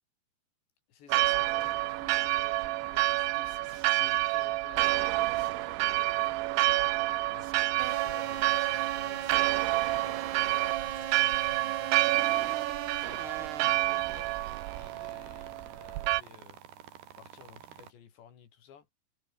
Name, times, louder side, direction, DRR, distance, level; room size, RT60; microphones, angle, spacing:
voice 1, 0.9-6.9 7.3-9.5 9.9-12.7 13.1-14.4 14.7-16.6 17.2-18.9, left 8 dB, 75° left, 5.5 m, -54 dB
Church bell, 1.1-16.2, right 19 dB, 90° right, 3.2 m, -28 dB
sound 1, 1.4-1.8 3.6-4.0 5.3-5.5 5.9-6.2 7.4-7.5 7.8-7.9 9.2-9.7 10.9-11.2 11.6-11.8 12.2-12.3 12.5-12.6, right 4 dB, 30° right, 5.1 m, -59 dB
sound 2, 7.8-17.9, right 10 dB, 65° right, 4.1 m, -40 dB
omnidirectional pair, 5.1 m